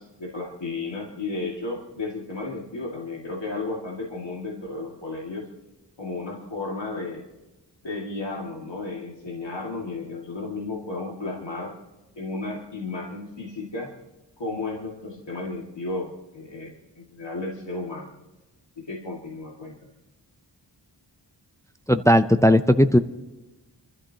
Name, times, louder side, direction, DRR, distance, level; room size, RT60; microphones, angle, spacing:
voice 1, 0.0-5.5 6.0-7.2 7.8-11.7 12.2-13.9 14.4-18.2 18.8-19.9, left 3 dB, 85° left, -3 dB, 2.1 m, -33 dB
voice 2, 21.9-23.0, equal, 5° left, 10 dB, 0.5 m, -17 dB
29.0 x 13.0 x 2.8 m, 1.1 s
wide cardioid pair, 55°, 42 cm